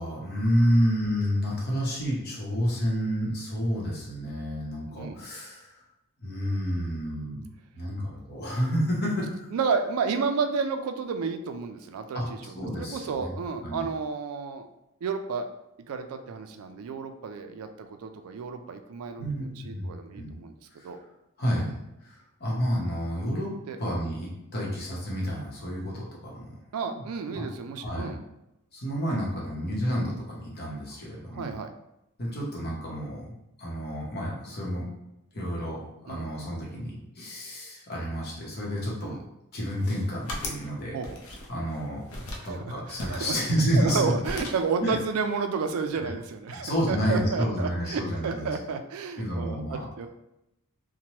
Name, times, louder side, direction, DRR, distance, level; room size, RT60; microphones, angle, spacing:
voice 1, 0.0-5.8 6.2-7.5 7.7-9.5 12.1-12.3 12.5-13.3 13.6-13.9 19.2-20.4 20.8-21.0 21.4-23.5 23.8-26.6 26.8-27.0 27.3-27.4 27.8-28.1 28.7-31.5 32.2-33.3 33.6-34.9 35.3-39.2 39.5-41.0 41.5-44.0 44.8-44.9 45.9-46.1 46.5-48.5 49.2-49.9, equal, 50° left, -3 dB, 0.8 m, -30 dB
voice 2, 9.5-14.7 15.0-15.5 15.9-20.6 20.8-21.0 23.7-23.8 24.0-24.1 26.7-28.2 31.3-31.7 36.1-36.3 39.0-39.2 40.9-41.2 42.4-43.4 43.8-50.1, right 5 dB, 75° right, 7 dB, 0.3 m, -31 dB
sound 1, 39.7-40.7 41.0-41.8 42.1-42.5 43.0-44.0 44.2-44.7, left 1 dB, 80° left, 0.5 m, -38 dB
2.8 x 2.1 x 2.9 m, 0.85 s
head